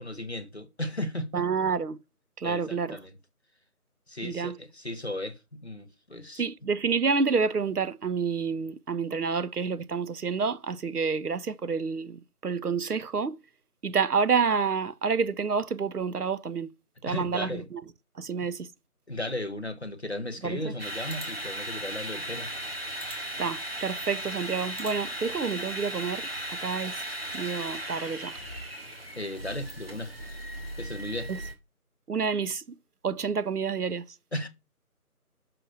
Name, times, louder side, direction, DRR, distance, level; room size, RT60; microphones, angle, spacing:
voice 1, 0.0-1.5 2.4-3.2 4.1-6.4 17.0-17.7 18.4-18.5 19.1-22.5 29.2-30.1 30.8-31.3 34.3-34.5, left 1 dB, 45° left, 0.9 m, -35 dB
voice 2, 1.3-2.0 2.4-3.0 4.2-4.6 6.4-13.4 13.8-16.7 17.0-17.8 18.2-18.7 20.4-20.6 23.4-26.3 26.6-27.0 27.3-28.3 31.3-31.4 32.1-32.8 33.0-34.0, right 5 dB, 80° right, 0.8 m, -28 dB
sound 1, 20.8-31.5, right 1 dB, 40° right, 1.6 m, -37 dB
6.8 x 5.9 x 2.6 m
figure-of-eight pair, 175°, 45 cm